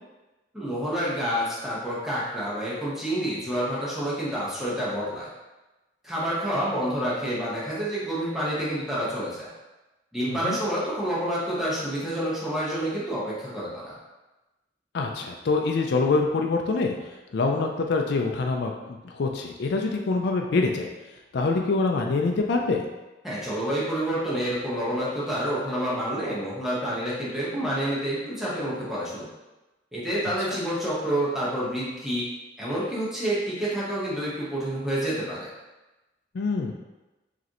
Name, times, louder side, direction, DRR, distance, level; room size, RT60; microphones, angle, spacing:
voice 1, 0.5-5.3 6.0-9.5 10.1-14.0 23.2-29.3 29.9-32.2 32.6-35.5, right 1 dB, ahead, -8 dB, 1.1 m, -28 dB
voice 2, 14.9-16.9 17.3-20.9 21.3-22.8 36.3-36.7, left 3 dB, 60° left, 2 dB, 0.4 m, -25 dB
4.9 x 3.2 x 2.9 m, 1.1 s
head